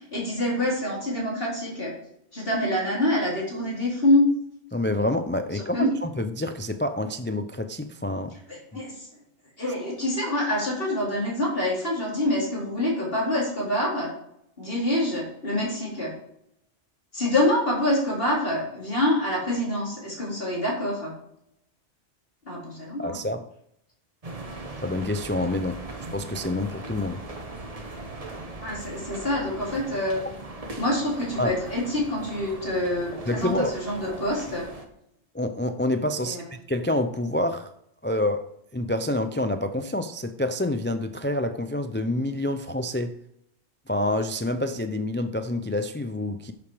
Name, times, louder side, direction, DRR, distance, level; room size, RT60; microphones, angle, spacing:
voice 1, 0.0-1.9 2.3-4.3 5.5-5.9 8.5-9.1 9.6-14.1 14.6-16.1 17.1-21.1 22.4-23.2 28.6-30.2 30.8-34.7 36.2-36.4, left 1 dB, 55° left, 4.7 m, -26 dB
voice 2, 4.7-8.4 23.0-23.5 24.8-27.3 31.4-31.5 33.3-33.7 35.3-37.7 38.0-43.2 43.9-46.5, left 1 dB, 15° left, 0.4 m, -27 dB
sound 1, 24.2-34.8, right 2 dB, 35° right, 1.5 m, -39 dB
11.0 x 7.1 x 5.0 m
omnidirectional pair, 1.2 m